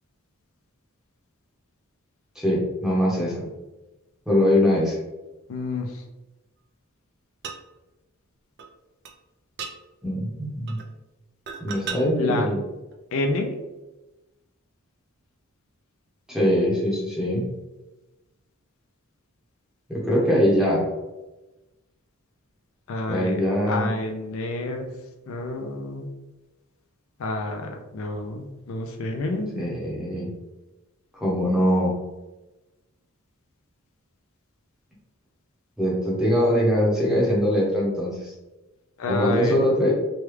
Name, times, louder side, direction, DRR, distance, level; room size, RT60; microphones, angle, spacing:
voice 1, 2.4-3.4 4.3-5.0 10.0-10.8 11.6-12.6 16.3-17.5 19.9-20.9 23.1-23.9 29.6-30.3 31.1-31.9 35.8-38.3 39.1-39.9, equal, ahead, -5 dB, 0.8 m, -22 dB
voice 2, 5.5-6.0 12.2-12.5 13.1-13.5 22.9-23.4 23.7-24.9 25.3-26.1 27.2-29.7 39.0-39.6, left 2 dB, 65° left, 3 dB, 0.4 m, -29 dB
sound 1, 7.4-7.6 8.6-8.7 9.0-9.2 9.6-9.7 10.7-10.9 11.5-12.0 12.9-13.0, right 6 dB, 50° right, 0.3 m, -35 dB
3.2 x 2.3 x 3.1 m, 1.1 s
head